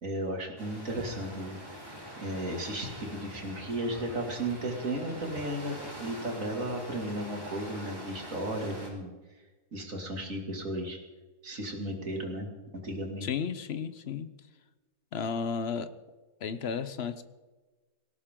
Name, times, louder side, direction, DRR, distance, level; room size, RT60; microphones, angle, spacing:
voice 1, 0.0-1.6 2.2-9.1 9.7-11.0 11.4-12.5 12.8-13.3, right 1 dB, 55° right, 2 dB, 2.9 m, -34 dB
sound 1, 0.6-8.9, equal, 15° right, 3.5 m, -44 dB
voice 2, 13.2-14.3 15.1-15.9 16.4-17.2, left 6 dB, 50° left, 13 dB, 0.9 m, -33 dB
18.0 x 18.0 x 3.8 m, 1.2 s
omnidirectional pair, 1.6 m